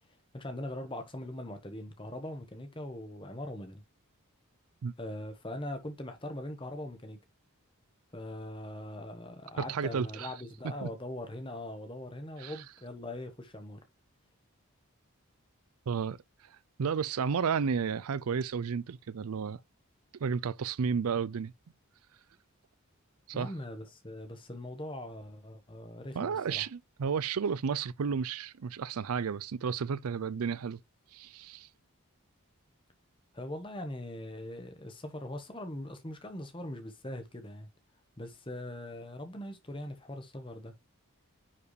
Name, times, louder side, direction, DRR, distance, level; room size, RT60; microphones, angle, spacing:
voice 1, 0.3-3.8 5.0-7.2 8.1-13.8 23.3-26.6 33.3-37.7 38.2-40.7, left 1 dB, 20° left, 1.3 m, -41 dB
voice 2, 9.7-10.3 10.8-10.9 12.4-12.5 15.9-16.2 16.8-19.6 20.2-21.5 23.3-23.5 26.2-30.8 31.1-31.7, right 6 dB, 80° right, 0.5 m, -32 dB
10.0 x 4.7 x 3.2 m
head